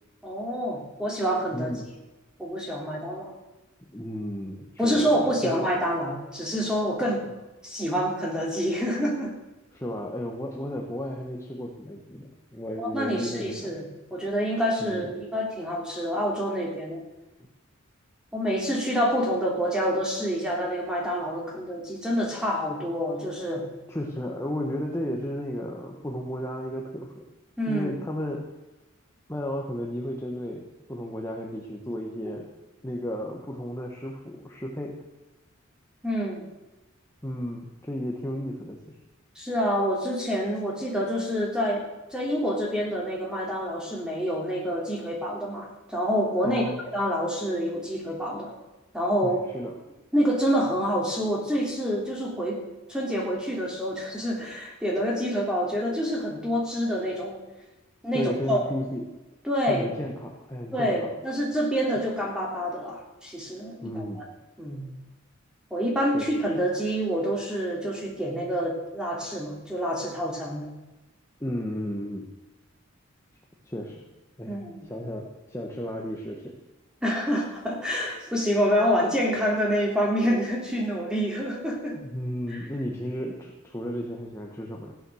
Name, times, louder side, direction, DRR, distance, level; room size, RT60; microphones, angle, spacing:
voice 1, 0.2-1.7 2.4-3.3 4.8-7.3 7.6-9.3 12.8-13.8 14.1-17.0 18.3-23.6 27.6-27.9 32.2-32.4 36.0-36.4 39.3-41.9 42.1-46.6 46.9-48.5 48.9-49.4 50.1-52.6 52.9-57.4 58.0-58.6 59.4-59.9 60.7-64.2 64.6-64.9 65.7-70.7 74.5-74.8 77.0-82.0 82.5-82.6, equal, 5° right, -2 dB, 3.5 m, -27 dB
voice 2, 1.5-1.9 3.8-5.6 9.7-13.8 14.8-15.1 23.9-27.2 27.7-28.4 29.3-32.5 32.8-34.9 37.2-38.9 46.4-46.8 49.2-49.7 58.1-59.1 59.7-61.1 63.8-64.2 66.1-66.4 71.4-72.3 73.6-74.0 74.4-74.6 74.8-76.5 81.9-84.9, equal, 15° left, -1 dB, 1.3 m, -33 dB
15.5 x 10.0 x 6.4 m, 1.1 s
head